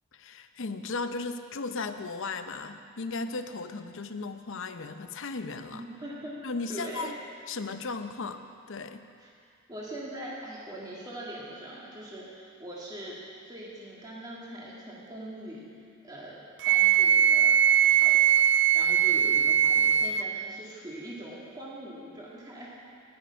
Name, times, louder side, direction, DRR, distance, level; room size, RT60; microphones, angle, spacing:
voice 1, 0.1-5.8 6.4-7.1 7.5-8.4 8.7-9.0, left 3 dB, 65° left, 9 dB, 0.7 m, -36 dB
voice 2, 5.7-7.1 9.2-9.3 9.7-13.2 13.4-16.4 16.7-18.4 18.7-22.7, right 1 dB, 20° right, -6 dB, 1.8 m, -42 dB
Wind instrument woodwind instrument, 16.6-20.3, right 10 dB, 60° right, 0.4 m, -21 dB
14.5 x 10.5 x 5.7 m, 2.3 s
head